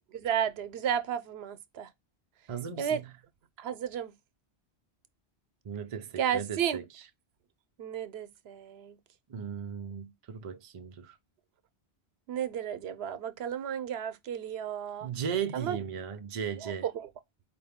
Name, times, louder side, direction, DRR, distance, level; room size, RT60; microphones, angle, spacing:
voice 1, 0.1-1.9 2.8-3.0 3.6-4.1 6.2-6.8 7.8-9.0 12.3-15.1 15.5-15.8 16.6-17.1, right 9 dB, 75° right, 0.8 m, -33 dB
voice 2, 2.5-3.1 5.6-7.1 9.3-11.2 15.0-16.9, right 7 dB, 40° right, 0.5 m, -36 dB
4.6 x 2.6 x 3.5 m
omnidirectional pair, 1.1 m